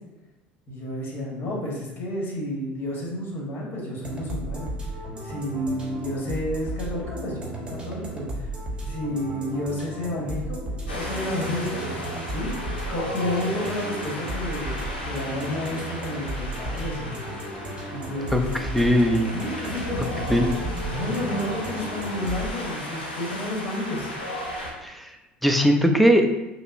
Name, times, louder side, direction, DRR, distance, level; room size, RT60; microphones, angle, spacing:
voice 1, 0.7-4.7 5.2-8.5 8.8-11.9 12.3-12.5 12.9-17.1 17.9-18.5 19.3-20.3 20.8-24.1, left 1 dB, 45° left, -3 dB, 1.4 m, -31 dB
sound 1, 4.0-22.5, right 1 dB, 15° right, 1.0 m, -35 dB
Wind, 10.9-24.7, left 1 dB, 90° left, 0.6 m, -34 dB
voice 2, 18.3-19.3 20.3-20.5 24.8-25.1 25.4-26.3, equal, ahead, 4 dB, 0.5 m, -20 dB
5.1 x 2.0 x 2.5 m, 1.0 s
hypercardioid pair, 70°, 5 cm